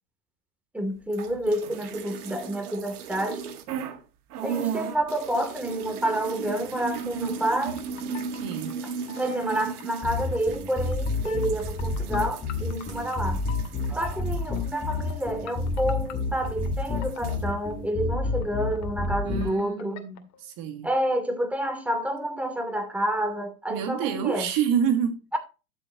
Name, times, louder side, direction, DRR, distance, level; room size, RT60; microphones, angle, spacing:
voice 1, 0.7-3.4 4.4-7.8 9.2-13.4 13.9-20.0 20.8-24.5 25.3-25.4, right 1 dB, 5° right, 2.6 m, -29 dB
sound 1, 1.1-4.0 4.3-16.2 16.5-17.4, right 6 dB, 75° right, 1.9 m, -37 dB
sound 2, 7.1-7.3 7.6-13.2 13.5-19.1 19.4-20.4, left 10 dB, 35° left, 2.3 m, -45 dB
voice 2, 8.3-8.7 19.2-20.9 23.7-25.2, right 8 dB, 45° right, 1.9 m, -28 dB
sound 3, 10.0-19.5, left 3 dB, 20° left, 3.8 m, -29 dB
12.5 x 7.5 x 2.9 m
hypercardioid pair, 95°, 46 cm